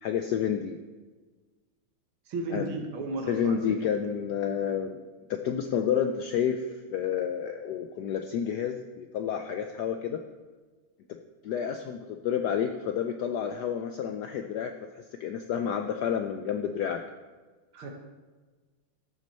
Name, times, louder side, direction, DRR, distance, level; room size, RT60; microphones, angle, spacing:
voice 1, 0.0-0.8 2.5-2.7 3.3-5.0 5.3-10.2 11.4-17.0, left 8 dB, 85° left, 6 dB, 0.9 m, -30 dB
voice 2, 2.3-3.9 17.7-17.9, right 2 dB, 75° right, 3 dB, 2.2 m, -34 dB
14.0 x 6.1 x 4.3 m, 1.3 s
omnidirectional pair, 2.4 m